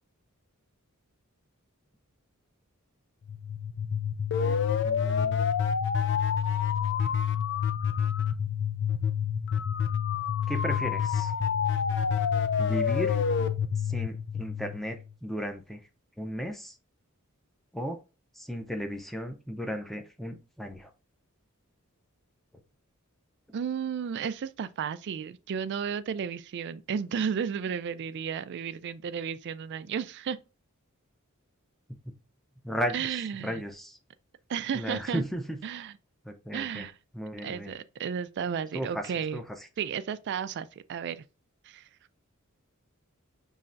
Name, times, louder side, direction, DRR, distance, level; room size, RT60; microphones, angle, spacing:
sound 1, 3.3-15.1, left 7 dB, 55° left, 0.4 m, -28 dB
voice 1, 4.8-5.5 10.5-11.3 12.6-13.2 13.7-15.9 16.2-16.8 17.7-18.0 18.3-20.9 31.9-32.1 32.6-34.0 34.7-35.6 36.2-36.9 37.1-37.7 38.7-39.4, equal, ahead, 0.6 m, -35 dB
voice 2, 23.5-30.4 32.9-33.6 34.5-35.2 35.6-35.9 36.5-36.9 37.4-39.4 39.8-41.2 41.6-41.9, right 7 dB, 55° right, 0.3 m, -33 dB
5.6 x 3.1 x 2.5 m
head